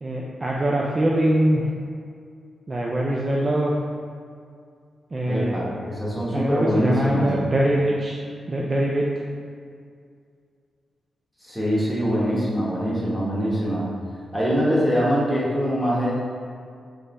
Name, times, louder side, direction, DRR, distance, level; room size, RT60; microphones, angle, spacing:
voice 1, 0.0-1.6 2.7-3.7 5.1-5.6 6.3-8.2 8.5-9.1, right 1 dB, 30° right, -3 dB, 0.4 m, -23 dB
voice 2, 5.3-7.3 11.4-13.9 14.3-16.2, equal, ahead, -7 dB, 1.1 m, -23 dB
3.7 x 3.3 x 4.1 m, 2.2 s
wide cardioid pair, 125°, 0 cm